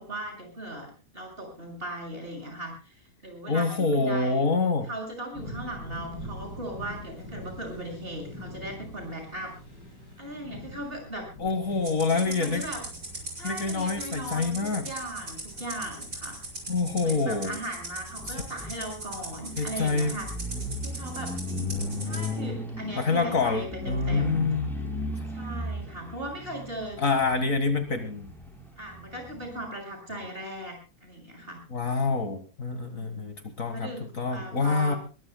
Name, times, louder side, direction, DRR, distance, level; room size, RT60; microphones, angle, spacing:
voice 1, 0.0-4.5 4.9-9.5 10.2-11.3 12.1-12.8 13.3-16.4 17.0-20.3 20.8-21.3 22.0-24.5 25.3-27.0 27.3-27.4 28.8-31.6 32.9-33.3 33.7-35.0, right 1 dB, 30° right, 3 dB, 6.9 m, -38 dB
voice 2, 3.5-4.9 11.4-12.6 13.4-14.9 16.7-17.6 19.6-20.1 23.0-24.8 27.0-28.3 31.7-33.9 34.2-35.0, left 4 dB, 50° left, 8 dB, 2.0 m, -26 dB
sound 1, 5.3-22.2, left 1 dB, 80° left, 8.7 m, -45 dB
Rattle (instrument), 11.8-22.3, right 2 dB, 70° right, 6.3 m, -39 dB
sound 2, 12.6-29.7, left 1 dB, ahead, 5.1 m, -38 dB
22.0 x 21.0 x 2.2 m, 0.33 s
omnidirectional pair, 1.8 m